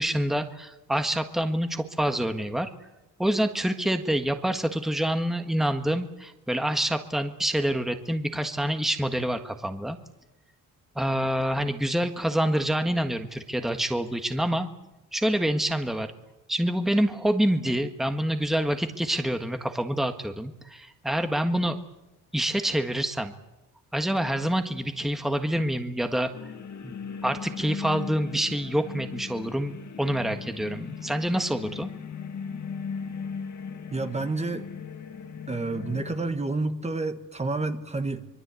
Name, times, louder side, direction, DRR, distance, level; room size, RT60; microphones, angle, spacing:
voice 1, 0.0-2.7 3.2-10.0 10.9-14.7 15.1-16.1 16.5-21.8 22.3-23.3 23.9-26.3 26.8-26.9 27.2-31.9, right 1 dB, ahead, 7 dB, 1.5 m, -27 dB
sound 1, 26.3-36.3, left 6 dB, 60° left, 2.4 m, -38 dB
voice 2, 33.9-34.7 35.5-38.3, right 3 dB, 20° right, 8 dB, 1.6 m, -29 dB
25.5 x 22.5 x 8.4 m, 0.97 s
cardioid pair, 125°, 32 cm